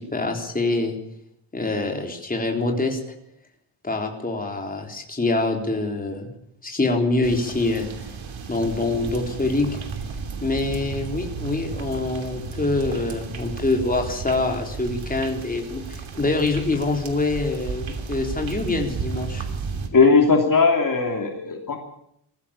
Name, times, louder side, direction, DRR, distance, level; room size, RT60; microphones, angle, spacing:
voice 1, 0.1-1.0 1.5-3.0 3.8-6.3 6.6-7.9 8.5-9.7 10.4-19.4, left 2 dB, 20° left, 2 dB, 3.8 m, -25 dB
sound 1, 7.2-19.9, right 5 dB, 90° right, 3.0 m, -33 dB
voice 2, 19.9-21.8, left 4 dB, 45° left, 2 dB, 2.9 m, -18 dB
22.5 x 15.0 x 8.8 m, 0.75 s
wide cardioid pair, 160°, 45 cm